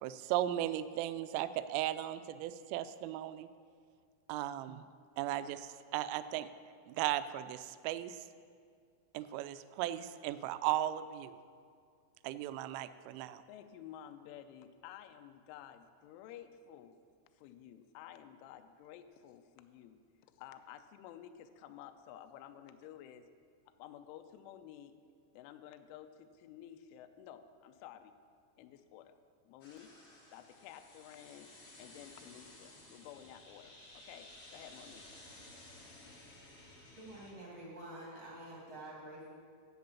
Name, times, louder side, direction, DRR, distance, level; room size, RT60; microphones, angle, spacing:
voice 1, 0.0-3.5 4.3-4.8 5.2-6.5 6.9-8.2 9.1-11.4 12.2-13.4, right 13 dB, 85° right, 12 dB, 3.0 m, -36 dB
voice 2, 13.5-17.0 17.4-20.0 20.3-23.3 23.8-25.0 25.3-28.1 28.6-29.2 29.5-29.9 30.3-31.5 31.8-35.0, left 10 dB, 85° left, 8 dB, 2.9 m, -52 dB
sound 1, 29.6-37.3, left 1 dB, 50° left, 1.7 m, -56 dB
voice 3, 37.0-39.3, right 1 dB, 50° right, -5 dB, 1.5 m, -48 dB
10.5 x 8.6 x 7.0 m, 2.2 s
omnidirectional pair, 5.9 m